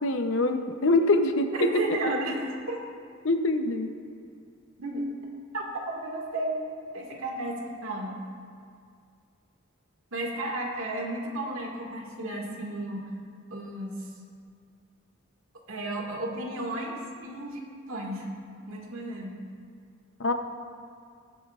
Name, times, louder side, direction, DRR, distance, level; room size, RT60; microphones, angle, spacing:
voice 1, 0.0-1.5 3.2-3.9 20.2-20.3, left 2 dB, 65° left, 7 dB, 0.7 m, -24 dB
voice 2, 1.6-2.4 2.7-2.8 4.8-5.1 5.5-5.6 5.9-6.6 6.9-8.2 10.1-13.1 13.5-14.1 15.7-17.6 17.9-18.3 18.7-19.4, right 1 dB, 85° right, -1 dB, 1.9 m, -33 dB
20.5 x 8.0 x 2.4 m, 2.2 s
head